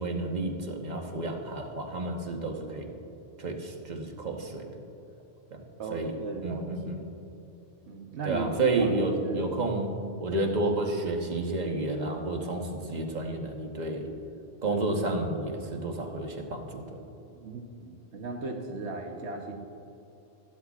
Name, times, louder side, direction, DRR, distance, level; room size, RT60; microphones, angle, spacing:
voice 1, 0.0-2.9 3.4-4.8 5.5-5.6 5.9-6.1 6.4-7.0 8.2-14.1 14.6-17.0, right 2 dB, 40° right, 2 dB, 1.2 m, -30 dB
voice 2, 5.8-7.1 7.9-8.9 9.2-9.4 17.3-19.6, right 3 dB, 75° right, 2 dB, 1.2 m, -37 dB
15.0 x 12.0 x 2.4 m, 2.9 s
omnidirectional pair, 1.1 m